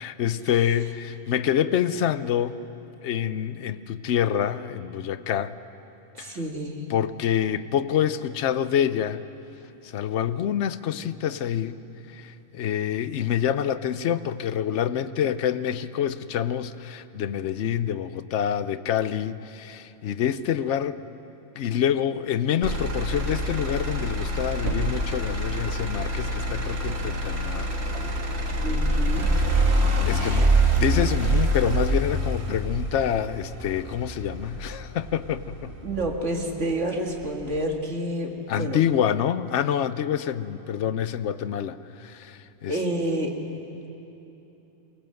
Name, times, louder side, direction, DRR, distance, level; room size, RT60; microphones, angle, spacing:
voice 1, 0.0-2.7 3.0-5.5 6.2-6.4 6.9-9.2 9.8-11.8 12.1-21.0 21.6-27.7 30.0-35.7 38.5-42.8, left 9 dB, 75° left, 14 dB, 1.0 m, -27 dB
voice 2, 6.1-6.9 28.6-29.3 30.1-30.5 35.8-38.8 42.7-43.3, right 1 dB, 80° right, 1 dB, 2.3 m, -29 dB
Motor vehicle (road), 22.6-36.6 37.1-37.6, right 1 dB, 65° right, 1.8 m, -25 dB
23.0 x 18.0 x 7.8 m, 3.0 s
omnidirectional pair, 1.2 m